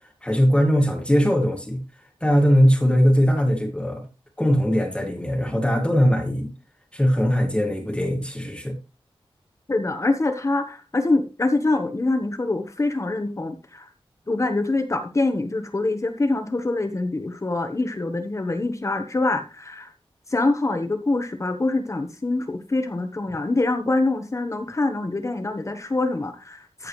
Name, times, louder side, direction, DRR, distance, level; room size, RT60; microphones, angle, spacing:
voice 1, 0.2-1.8 2.2-4.1 4.4-6.5 6.9-8.8, equal, 10° left, 2.0 m, -20 dB
voice 2, 9.7-13.9 14.3-19.9 20.3-26.9, left 2 dB, 35° left, 1.2 m, -25 dB
14.0 x 7.1 x 3.2 m
wide cardioid pair, 110°, 9 cm